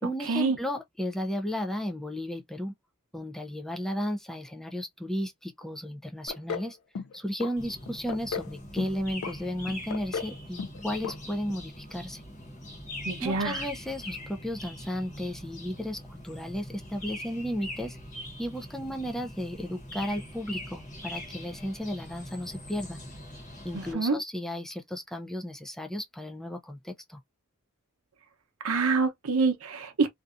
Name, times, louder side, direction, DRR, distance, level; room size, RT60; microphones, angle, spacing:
voice 1, 0.0-2.7 3.1-6.8 7.1-12.2 13.2-18.0 18.4-23.0 23.6-27.2, equal, ahead, 0.4 m, -34 dB
sound 1, 6.3-6.7 7.0-7.5 7.9-8.5 8.8-9.3 9.7-10.3 10.6-10.8 11.0-11.2 11.5-11.6, left 6 dB, 70° left, 0.3 m, -35 dB
sound 2, 7.6-23.9, left 1 dB, 35° left, 1.0 m, -42 dB
voice 2, 13.0-13.6 23.7-24.2 28.6-30.1, right 4 dB, 75° right, 0.7 m, -26 dB
2.6 x 2.3 x 2.4 m
head